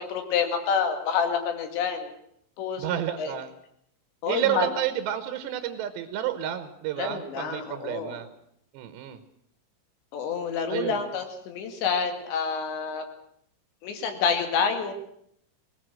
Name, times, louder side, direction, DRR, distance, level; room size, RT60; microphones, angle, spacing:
voice 1, 0.0-2.1 2.6-2.8 3.2-3.3 4.2-4.7 7.0-8.2 10.1-13.0 13.8-14.9, left 6 dB, 75° left, 6 dB, 4.4 m, -28 dB
voice 2, 2.8-3.5 4.3-8.3 8.7-9.2 10.7-11.1, right 11 dB, 75° right, 11 dB, 3.2 m, -30 dB
20.0 x 18.0 x 7.6 m, 0.71 s
omnidirectional pair, 5.2 m